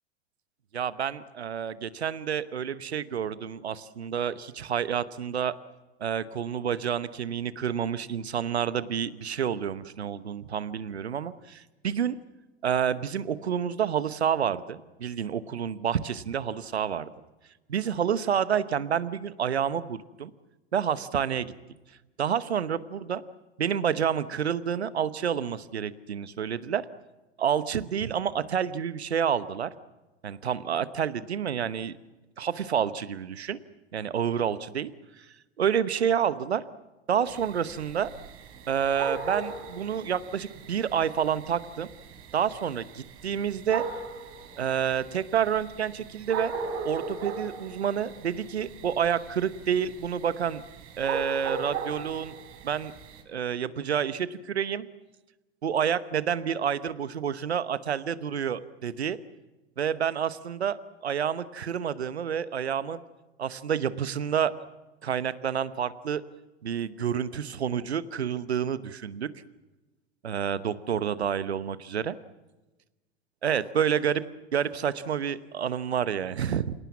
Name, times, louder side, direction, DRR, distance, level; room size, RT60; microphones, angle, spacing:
voice 1, 0.7-5.5 6.0-12.2 12.6-17.1 17.7-20.3 20.7-21.5 22.2-23.2 23.6-26.9 27.4-29.7 30.2-32.0 32.4-33.6 33.9-34.9 35.2-35.3 35.6-36.6 37.1-38.1 38.7-41.9 42.3-43.8 44.6-46.5 46.8-50.6 51.0-52.3 52.6-52.9 53.3-54.9 55.6-59.2 59.8-63.0 63.4-64.7 65.0-66.2 66.6-69.3 70.2-72.2 73.4-74.2 74.5-76.7, right 8 dB, 80° right, 16 dB, 1.1 m, -29 dB
sound 1, 37.3-53.2, right 5 dB, 45° right, 4.3 m, -39 dB
28.0 x 18.0 x 7.2 m, 1.1 s
figure-of-eight pair, 85°, 32 cm